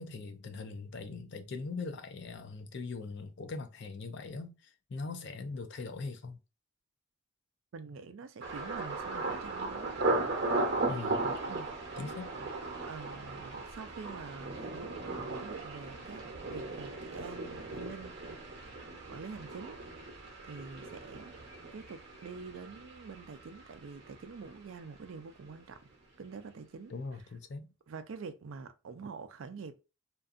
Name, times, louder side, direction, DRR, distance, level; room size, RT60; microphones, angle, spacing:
voice 1, 0.0-6.4 10.9-11.2 12.0-12.3 26.9-27.7, left 3 dB, 55° left, 0.4 m, -41 dB
voice 2, 7.7-10.0 11.5-12.5 12.8-18.2 19.1-19.8 20.4-25.8 26.2-26.9 27.9-29.8, right 5 dB, 75° right, 0.4 m, -46 dB
Thunder, 8.4-24.2 24.4-25.1 25.5-25.7, right 2 dB, 55° right, 0.7 m, -37 dB
2.6 x 2.4 x 2.4 m
head